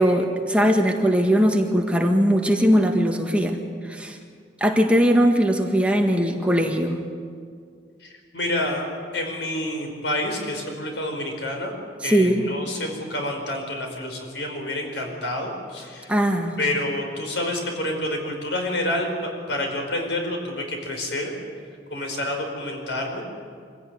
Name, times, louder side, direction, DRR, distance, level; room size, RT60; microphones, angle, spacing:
voice 1, 0.0-3.6 3.9-4.2 4.6-7.0 12.0-12.5 16.1-16.6, equal, 5° right, 2 dB, 1.7 m, -20 dB
voice 2, 8.0-8.9 9.1-11.8 12.0-16.1 16.6-21.3 21.9-23.2, left 1 dB, 90° left, 3 dB, 5.2 m, -28 dB
24.5 x 16.5 x 9.6 m, 2.2 s
head